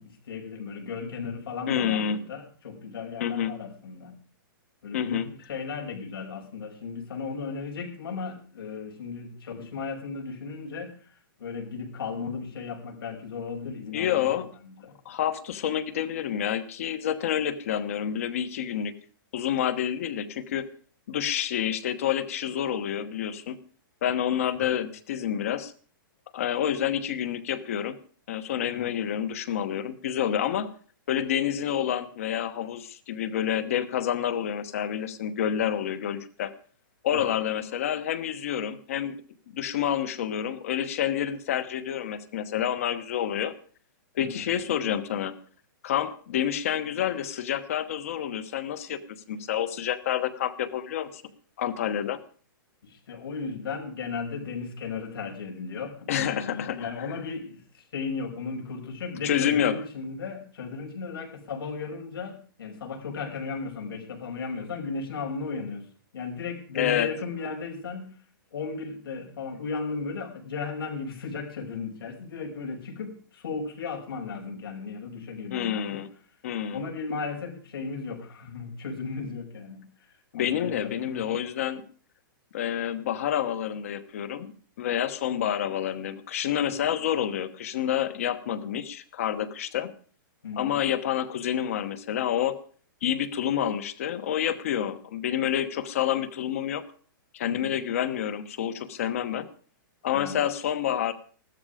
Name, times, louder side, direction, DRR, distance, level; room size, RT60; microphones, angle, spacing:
voice 1, 0.0-4.1 4.8-14.3 14.6-14.9 24.6-24.7 28.7-29.0 37.1-37.3 44.2-44.5 52.8-65.9 66.1-68.2 68.5-76.1 76.7-79.9 80.3-81.3 86.7-86.8 90.4-90.8 97.5-97.8 100.1-100.4, left 4 dB, 90° left, 0 dB, 5.4 m, -35 dB
voice 2, 1.7-2.2 3.2-3.5 4.9-5.3 13.9-14.5 15.0-18.9 19.3-20.7 21.1-23.6 24.0-25.7 26.3-28.0 28.3-30.7 31.1-36.5 37.0-39.2 39.5-43.5 44.1-45.4 45.8-49.0 49.3-51.2 51.6-52.2 56.1-57.1 59.2-59.8 66.7-67.1 75.5-76.1 76.4-76.8 80.3-81.9 82.5-89.9 90.6-92.6 93.0-96.8 97.3-99.5 100.0-101.1, left 10 dB, 40° left, 13 dB, 1.1 m, -28 dB
15.5 x 13.0 x 5.0 m, 0.42 s
hypercardioid pair, 180°, 12 cm